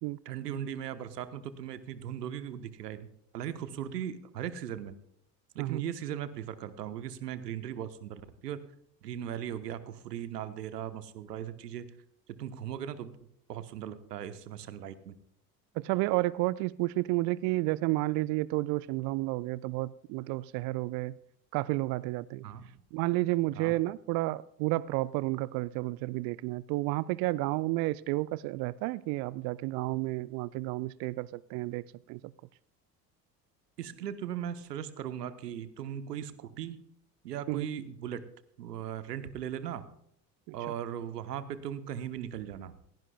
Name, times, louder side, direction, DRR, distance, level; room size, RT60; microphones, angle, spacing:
voice 1, 0.2-3.1 3.3-5.0 5.5-8.6 9.0-11.9 12.4-13.1 13.5-15.1 22.4-22.8 23.5-23.7 33.8-36.8 37.2-38.2 38.6-39.9 40.5-42.7, right 10 dB, 75° right, 13 dB, 1.1 m, -38 dB
voice 2, 15.8-21.2 21.5-22.5 22.9-32.3 37.5-37.7 40.5-40.6, right 19 dB, 40° right, 21 dB, 0.4 m, -31 dB
27.5 x 10.5 x 2.3 m, 0.74 s
figure-of-eight pair, 60°, 49 cm